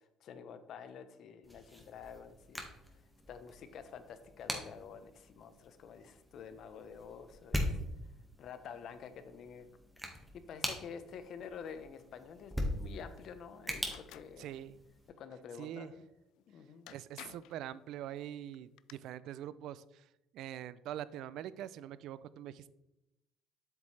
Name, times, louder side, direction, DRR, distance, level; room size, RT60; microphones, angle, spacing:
voice 1, 0.2-2.7 2.9-3.0 3.3-7.8 8.4-9.7 10.1-10.2 10.5-14.5 15.2-16.1 16.5-16.9, left 7 dB, 60° left, 10 dB, 0.9 m, -49 dB
sound 1, 1.4-15.1, equal, ahead, 1.6 m, -42 dB
sound 2, 13.8-14.3 16.4-16.5 16.9-17.6 18.5-18.9, left 14 dB, 80° left, 0.3 m, -52 dB
voice 2, 14.4-14.8 15.6-15.9 16.9-20.1 20.3-22.7, right 11 dB, 70° right, 17 dB, 0.4 m, -44 dB
8.1 x 7.0 x 3.3 m, 0.91 s
cardioid pair, 110°, 0 cm